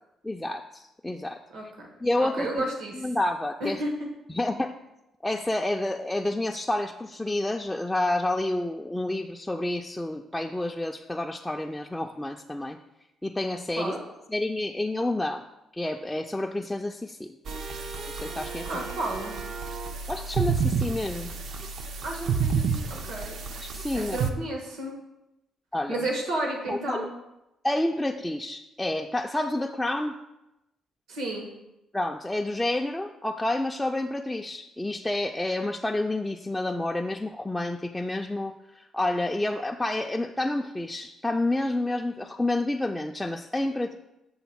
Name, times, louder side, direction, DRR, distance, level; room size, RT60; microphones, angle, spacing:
voice 1, 0.2-1.4 2.0-2.6 2.9-3.8 4.3-4.7 5.2-12.8 13.2-14.0 14.3-15.4 15.7-17.4 18.1-18.8 20.1-21.3 23.6-24.2 25.7-26.0 26.7-27.1 27.6-30.2 31.9-43.9, left 1 dB, 10° left, 2 dB, 0.4 m, -29 dB
voice 2, 1.5-1.9 2.2-3.0 3.6-4.1 13.8-14.0 18.6-19.3 22.0-23.4 23.9-25.0 25.9-27.1 31.1-31.5, right 1 dB, 85° right, 1 dB, 1.4 m, -32 dB
sound 1, 17.5-24.3, right 5 dB, 65° right, 0.6 m, -30 dB
7.1 x 3.3 x 6.0 m, 0.93 s
cardioid pair, 90°, 0 cm